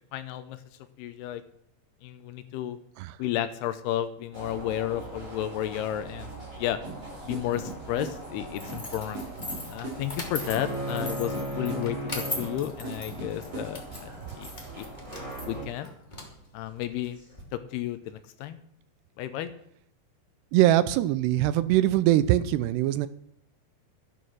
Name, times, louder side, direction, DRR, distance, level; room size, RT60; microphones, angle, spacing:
voice 1, 0.1-0.6 1.0-1.4 2.0-2.8 3.2-6.8 7.2-9.3 9.7-14.1 14.4-14.5 14.8-14.9 15.5-15.9 16.5-17.2 17.5-18.6 19.2-19.5, left 12 dB, 80° left, 11 dB, 2.6 m, -32 dB
sound 1, 4.3-15.7, right 1 dB, 35° right, 8.0 m, -39 dB
sound 2, 6.8-14.2, right 3 dB, 50° right, 5.3 m, -41 dB
sound 3, 8.5-17.4, left 1 dB, 20° left, 1.2 m, -40 dB
voice 2, 20.5-23.1, right 14 dB, 80° right, 15 dB, 2.6 m, -22 dB
12.5 x 10.0 x 6.2 m, 0.71 s
omnidirectional pair, 5.0 m